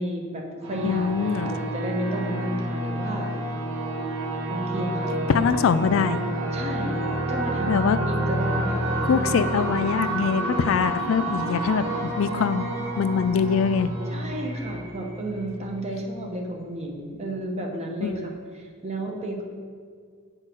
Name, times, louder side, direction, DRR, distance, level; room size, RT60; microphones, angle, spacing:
voice 1, 0.0-3.3 4.5-5.4 6.5-7.0 7.3-9.1 14.1-19.4, right 1 dB, 30° right, 1 dB, 1.1 m, -32 dB
sound 1, 0.6-15.9, right 1 dB, 90° right, 1.8 m, -29 dB
voice 2, 0.8-1.6 5.3-6.2 7.7-8.0 9.1-12.7 13.0-13.9 18.0-18.2, left 6 dB, 70° left, 12 dB, 0.3 m, -23 dB
7.6 x 4.5 x 6.2 m, 2.1 s
head